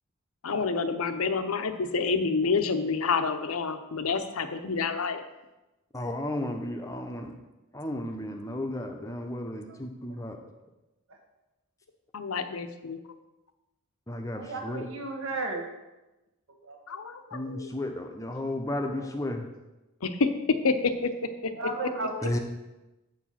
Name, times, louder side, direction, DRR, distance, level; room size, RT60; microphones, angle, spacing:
voice 1, 0.4-5.2 12.1-13.0 16.9-17.7 19.0-19.1 20.0-21.1 21.4-21.5, left 4 dB, 75° left, 9 dB, 0.7 m, -28 dB
voice 2, 5.9-7.3 7.7-10.4 14.1-14.9 17.3-19.5 22.2-22.4, left 1 dB, 15° left, 4 dB, 0.7 m, -33 dB
voice 3, 14.3-15.7 16.6-16.8 17.3-17.4 21.6-22.3, right 2 dB, 65° right, 2 dB, 1.4 m, -34 dB
8.0 x 4.9 x 5.7 m, 1.0 s
head